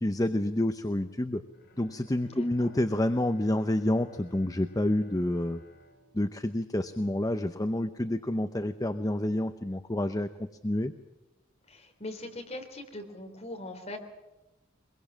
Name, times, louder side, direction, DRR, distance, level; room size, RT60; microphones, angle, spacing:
voice 1, 0.0-1.4 1.8-5.6 6.1-10.9, left 1 dB, 20° left, 9 dB, 0.7 m, -28 dB
Bowed string instrument, 1.5-7.7 8.1-8.2, left 1 dB, 60° left, 4.9 m, -60 dB
voice 2, 2.3-2.7 11.7-14.0, left 1 dB, 35° left, 3 dB, 3.5 m, -41 dB
23.5 x 22.0 x 7.3 m, 1.0 s
head